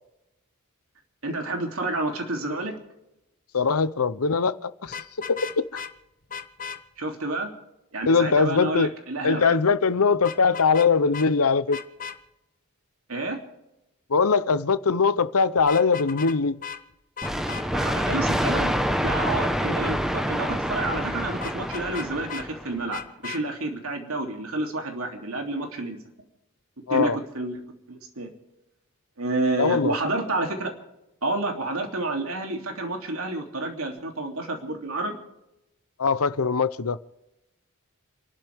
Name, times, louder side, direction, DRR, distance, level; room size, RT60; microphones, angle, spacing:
voice 1, 1.2-2.7 7.0-7.5 7.9-9.6 13.1-13.4 17.7-18.7 19.0-26.0 26.9-27.6 27.9-28.3 29.2-30.7 31.2-35.2, right 2 dB, 70° right, 3.1 m, -29 dB
voice 2, 3.5-5.0 5.3-5.8 8.1-8.9 9.2-11.8 14.1-16.6 26.9-27.2 29.6-29.9 36.0-37.0, left 5 dB, 85° left, 0.8 m, -21 dB
Vehicle horn car horn honking, 4.8-5.9 6.3-6.8 10.2-10.9 11.1-11.3 11.7-12.2 15.6-16.4 16.6-16.8 17.2-17.6 21.4-22.5 22.9-23.4, left 6 dB, 40° left, 1.1 m, -36 dB
sound 1, 17.2-22.8, equal, ahead, 1.2 m, -27 dB
30.0 x 12.0 x 3.6 m
head